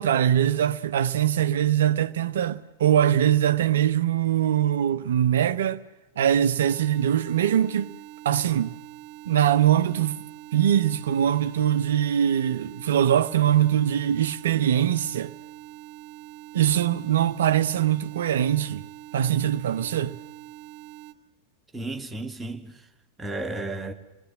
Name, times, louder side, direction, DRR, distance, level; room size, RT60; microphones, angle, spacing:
voice 1, 0.0-5.8 6.2-7.9 8.2-8.7 9.2-10.3 10.5-15.3 16.5-18.8 19.1-20.2, right 10 dB, 60° right, 1.1 m, -22 dB
sound 1, 6.6-21.1, right 12 dB, 45° right, 1.9 m, -44 dB
voice 2, 21.7-22.8 23.2-23.9, right 2 dB, 10° right, 2.3 m, -33 dB
28.0 x 20.5 x 7.3 m
figure-of-eight pair, 90°, 0 cm